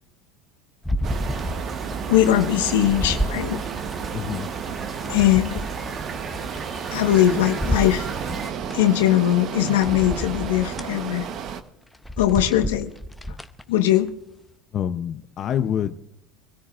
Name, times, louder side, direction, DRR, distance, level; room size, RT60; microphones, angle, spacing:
sound 1, 0.8-2.1 2.4-4.1 4.6-7.2 7.6-8.8 9.3-9.4 9.8-10.9 11.4-11.6 11.9-13.6 14.1-14.2, equal, 5° left, 0.7 m, -30 dB
sound 2, 1.0-8.5, right 4 dB, 25° right, 1.3 m, -35 dB
sound 3, 1.0-11.6, right 7 dB, 50° right, 1.0 m, -33 dB
voice 1, 2.1-3.6 5.1-5.6 6.9-8.1 8.7-11.3 12.2-12.9 13.7-14.2, left 12 dB, 90° left, 7 dB, 1.2 m, -20 dB
voice 2, 4.1-4.5 14.7-16.0, left 9 dB, 40° left, 9 dB, 0.6 m, -26 dB
24.5 x 13.0 x 2.5 m, 0.75 s
supercardioid pair, 115°, 0 cm